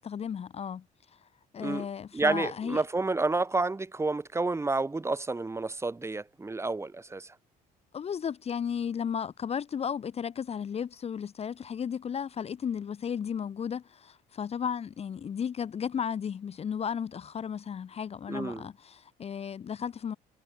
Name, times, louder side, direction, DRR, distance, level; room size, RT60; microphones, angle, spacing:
voice 1, 0.0-0.8 1.5-2.8 7.9-20.2, left 7 dB, 40° left, 1.0 m, -34 dB
voice 2, 2.1-7.3 18.3-18.7, right 3 dB, 15° right, 1.9 m, -30 dB
cardioid pair, 110°, 17 cm